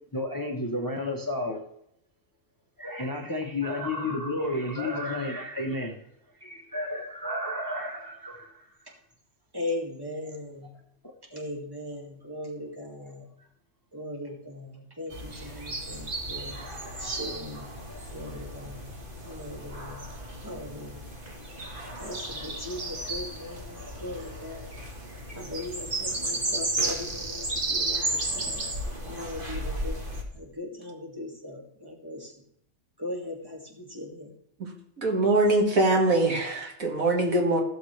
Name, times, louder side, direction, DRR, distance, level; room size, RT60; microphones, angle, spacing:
voice 1, 0.1-1.6 2.8-5.9 6.4-8.6 11.0-11.1 15.3-15.6, left 1 dB, 15° left, 2 dB, 1.0 m, -32 dB
voice 2, 9.5-10.7 11.3-13.3 13.9-16.6 17.0-17.7 18.1-18.8 19.2-20.0 20.4-21.1 22.0-24.8 25.3-28.0 28.3-28.6 29.1-30.0 30.3-32.3 33.0-34.3, left 1 dB, 15° right, -1 dB, 2.2 m, -38 dB
sound 1, 15.1-30.2, right 2 dB, 40° right, 1.7 m, -34 dB
voice 3, 35.0-37.6, right 2 dB, 85° right, 1 dB, 2.3 m, -23 dB
16.0 x 7.0 x 3.3 m, 0.74 s
omnidirectional pair, 1.4 m